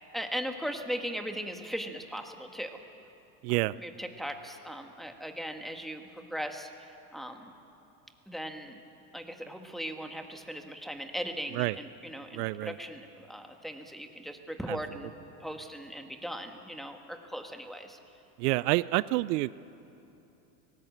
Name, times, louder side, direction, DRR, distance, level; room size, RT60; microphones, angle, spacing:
voice 1, 0.1-2.8 3.7-7.6 8.3-8.8 9.1-18.0, equal, ahead, 4 dB, 1.5 m, -38 dB
voice 2, 3.4-3.7 11.6-11.8 12.3-12.7 14.7-14.8 18.4-19.5, right 20 dB, 75° right, 18 dB, 0.6 m, -28 dB
19.0 x 17.0 x 8.1 m, 2.8 s
supercardioid pair, 110°, 48 cm